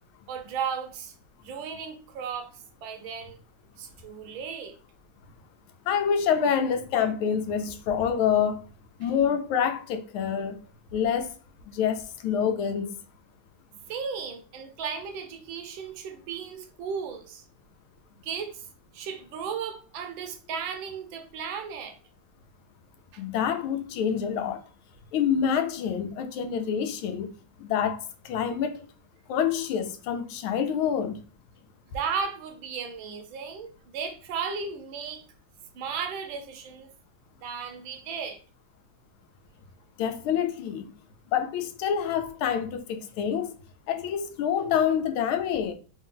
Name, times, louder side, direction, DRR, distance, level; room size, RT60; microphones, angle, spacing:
voice 1, 0.3-1.1 1.4-3.4 3.8-4.7 13.9-17.4 18.2-18.6 18.9-22.0 23.1-23.2 31.9-35.2 35.7-36.9 37.4-38.4, right 6 dB, 75° right, 1.4 m, -35 dB
voice 2, 5.9-8.7 9.0-10.6 10.9-11.3 11.7-12.9 23.2-24.6 25.1-27.3 27.6-28.8 29.3-31.2 40.0-40.9 41.3-43.5 43.9-45.7, left 8 dB, 90° left, 1.5 m, -27 dB
3.8 x 2.7 x 3.7 m
omnidirectional pair, 2.2 m